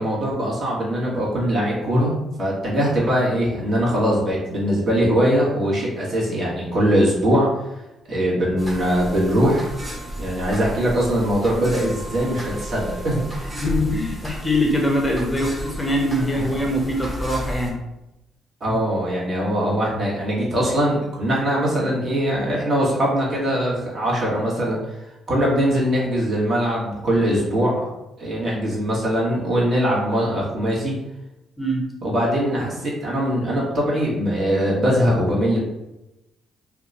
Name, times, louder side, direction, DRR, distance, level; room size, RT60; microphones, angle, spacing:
voice 1, 0.0-2.1 2.4-7.5 8.1-9.6 10.1-13.6 16.3-16.5 18.6-24.8 25.3-27.9 28.2-30.9 32.0-35.6, equal, 45° right, -5 dB, 1.3 m, -21 dB
sound 1, 8.6-17.7, right 1 dB, 20° right, 0.9 m, -33 dB
voice 2, 13.6-17.8 31.6-31.9, left 1 dB, 15° left, 0 dB, 0.6 m, -23 dB
2.8 x 2.3 x 3.9 m, 0.95 s
cardioid pair, 90°, 0 cm